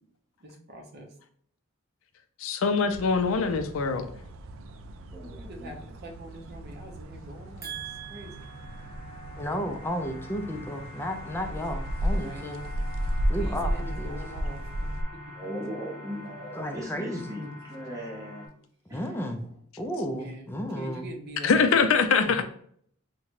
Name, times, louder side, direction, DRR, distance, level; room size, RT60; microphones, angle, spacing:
voice 1, 0.4-1.1 5.3-7.8 8.1-8.3 12.1-12.7 13.4-14.9 20.1-20.5 20.8-21.6, right 1 dB, 55° right, 1 dB, 0.7 m, -44 dB
voice 2, 2.4-4.1 21.4-22.4, left 5 dB, 75° left, 8 dB, 0.4 m, -23 dB
sound 1, 2.9-15.0, equal, 80° right, 0.3 m, -34 dB
voice 3, 5.1-5.7 7.6-8.9 15.3-18.5 18.9-19.6, right 1 dB, 15° right, -4 dB, 0.7 m, -39 dB
sound 2, 6.4-18.5, left 1 dB, 30° right, 1.2 m, -46 dB
voice 4, 9.4-12.6 13.3-14.2 16.5-17.6 18.9-19.4 19.8-21.1 22.3-22.4, equal, 10° left, 4 dB, 0.3 m, -33 dB
3.7 x 2.2 x 3.1 m, 0.63 s
head